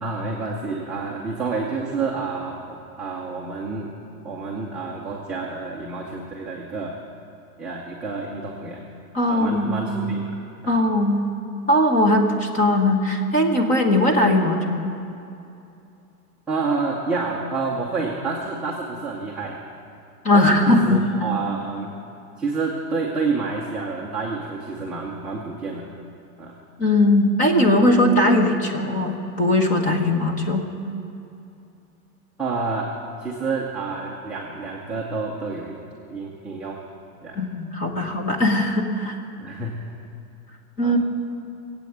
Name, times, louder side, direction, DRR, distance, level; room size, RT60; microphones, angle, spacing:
voice 1, 0.0-4.0 4.2-7.0 7.6-8.9 9.3-10.8 16.5-19.6 20.3-22.0 22.4-25.9 26.4-26.6 32.4-35.8 36.1-36.8 37.2-37.4 37.9-38.1 39.4-40.0 40.8-41.0, right 4 dB, 5° right, -7 dB, 0.6 m, -29 dB
voice 2, 9.1-9.9 10.7-11.2 11.7-15.0 20.2-21.0 26.8-30.7 37.3-39.1 40.8-41.0, left 1 dB, 15° left, 3 dB, 1.2 m, -19 dB
20.0 x 8.6 x 7.9 m, 2.7 s
supercardioid pair, 165°, 45 cm